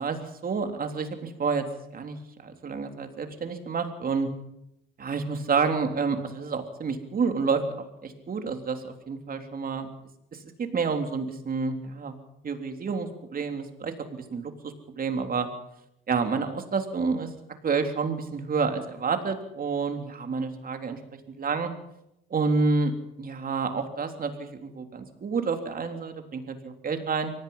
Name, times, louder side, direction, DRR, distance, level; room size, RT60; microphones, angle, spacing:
voice 1, 0.0-1.7 1.9-4.3 5.0-9.9 10.3-12.2 12.4-15.5 16.1-17.3 17.6-21.7 22.3-22.9 23.2-27.3, right 4 dB, 45° right, 6 dB, 3.6 m, -29 dB
24.5 x 18.5 x 5.7 m, 0.82 s
cardioid pair, 90°, 20 cm